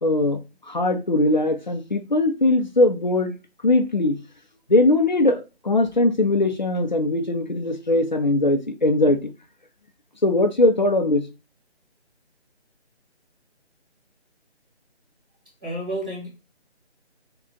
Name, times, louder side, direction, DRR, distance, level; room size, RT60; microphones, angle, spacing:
voice 1, 0.0-3.4 3.6-4.2 4.7-9.2 10.2-11.3, left 2 dB, 45° left, 0.5 m, -20 dB
voice 2, 15.6-16.3, right 1 dB, 10° right, 1.1 m, -30 dB
3.7 x 2.3 x 3.7 m
figure-of-eight pair, 175°, 34 cm